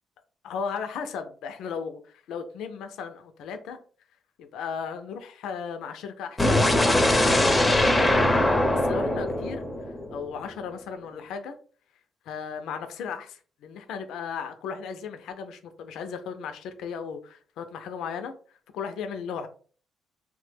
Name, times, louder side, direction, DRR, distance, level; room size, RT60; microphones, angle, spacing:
voice 1, 0.4-3.8 4.4-8.4 8.7-11.5 12.3-18.3 18.7-19.5, left 6 dB, 85° left, 7 dB, 0.4 m, -36 dB
sound 1, 6.4-10.4, left 1 dB, 15° left, 0.6 m, -22 dB
3.1 x 2.1 x 3.2 m, 0.42 s
cardioid pair, 90°, 0 cm